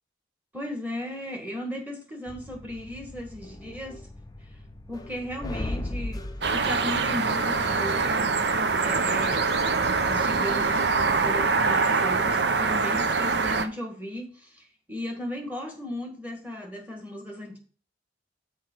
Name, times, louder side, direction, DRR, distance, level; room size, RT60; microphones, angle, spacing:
voice 1, 0.5-4.0 4.9-17.6, left 1 dB, 10° right, 2 dB, 1.8 m, -36 dB
sound 1, 2.3-11.5, left 1 dB, 20° left, 0.6 m, -40 dB
sound 2, 6.4-13.6, right 4 dB, 65° right, 0.7 m, -24 dB
6.4 x 4.8 x 6.2 m, 0.41 s
head